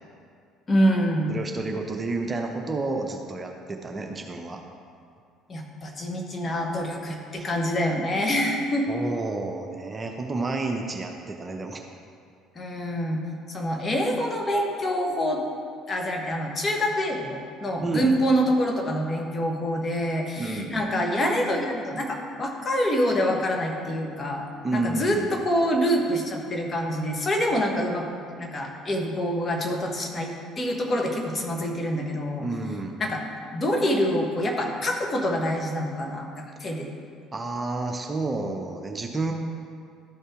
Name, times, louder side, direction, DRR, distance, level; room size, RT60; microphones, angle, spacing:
voice 1, 0.7-1.3 5.5-8.9 12.5-13.2 13.5-15.4 15.9-28.0 28.3-32.4 33.0-36.9, equal, 30° left, 1 dB, 1.4 m, -26 dB
voice 2, 1.3-4.6 7.4-7.5 8.9-11.8 17.8-18.1 20.4-20.7 24.6-25.4 32.4-33.0 37.3-39.3, right 3 dB, 25° right, 3 dB, 0.8 m, -30 dB
12.5 x 5.4 x 3.7 m, 2.2 s
figure-of-eight pair, 55°, 0 cm